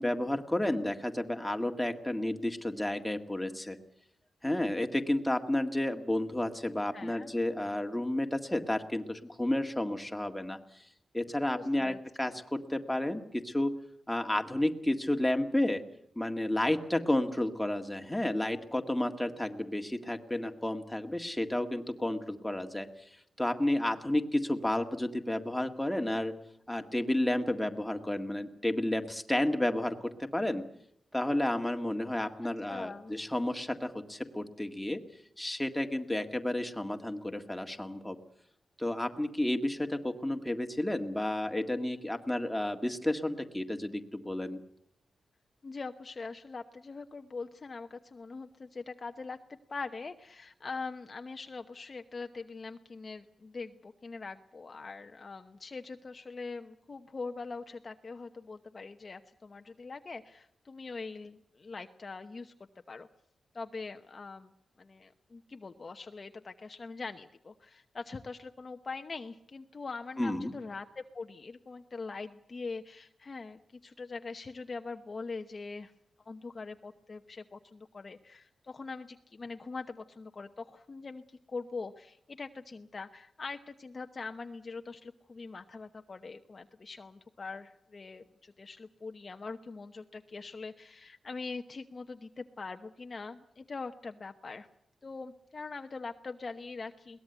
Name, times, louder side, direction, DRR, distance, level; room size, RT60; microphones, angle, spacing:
voice 1, 0.0-3.8 4.4-10.8 11.1-13.7 14.1-15.8 16.2-23.1 23.4-26.3 26.7-30.6 31.1-35.0 35.4-38.2 38.8-44.6 70.2-70.5, left 1 dB, 5° left, 5 dB, 1.9 m, -31 dB
voice 2, 6.9-7.3 11.5-12.3 32.4-33.1 45.6-62.5 62.9-63.1 63.5-64.5 64.8-75.9 76.3-94.7 95.0-97.2, left 4 dB, 35° left, 6 dB, 0.9 m, -43 dB
22.0 x 19.0 x 8.1 m, 0.73 s
wide cardioid pair, 135°, 0 cm